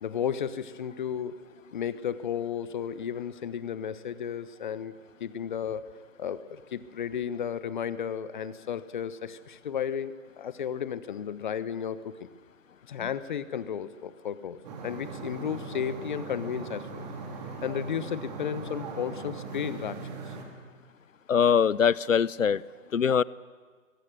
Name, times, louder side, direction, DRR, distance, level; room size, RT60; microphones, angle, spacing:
voice 1, 0.0-1.4 1.7-4.9 5.2-5.8 6.2-12.3 12.9-17.0 17.6-20.1, left 8 dB, 35° left, 15 dB, 1.1 m, -33 dB
sound 1, 14.6-20.4, right 4 dB, 30° right, 3.3 m, -39 dB
voice 2, 21.3-22.6 22.9-23.2, left 7 dB, 75° left, 22 dB, 0.7 m, -22 dB
27.0 x 22.5 x 6.5 m, 1.5 s
figure-of-eight pair, 140°, 39 cm